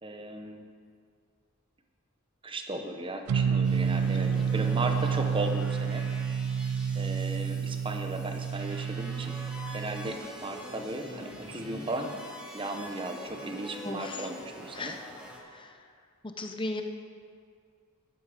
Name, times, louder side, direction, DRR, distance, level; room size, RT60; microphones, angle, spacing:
voice 1, 0.0-0.6 2.4-6.1 6.9-9.4 9.7-12.1 12.5-15.0, right 2 dB, 25° right, 4 dB, 0.9 m, -36 dB
sound 1, 3.3-10.1, right 6 dB, 80° right, 0.3 m, -29 dB
sound 2, 3.6-15.4, equal, 5° right, 1.5 m, -45 dB
voice 2, 4.2-4.5 13.8-14.3 14.7-15.0 15.4-15.9 16.4-16.8, left 2 dB, 20° left, 5 dB, 0.8 m, -37 dB
12.0 x 11.0 x 5.0 m, 2.1 s
head